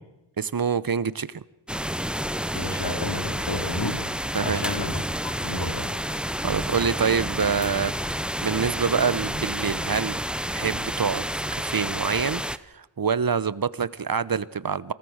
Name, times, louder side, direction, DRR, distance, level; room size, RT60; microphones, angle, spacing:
voice 1, 0.4-1.4 4.3-4.7 6.4-10.2 10.5-11.2 11.5-14.9, right 6 dB, 45° right, 1.0 m, -26 dB
sound 1, 1.7-12.6, equal, ahead, 0.9 m, -29 dB
voice 2, 2.5-4.0 4.4-5.9, left 2 dB, 50° left, 4.6 m, -31 dB
27.0 x 18.0 x 6.5 m
cardioid pair, 45°, 49 cm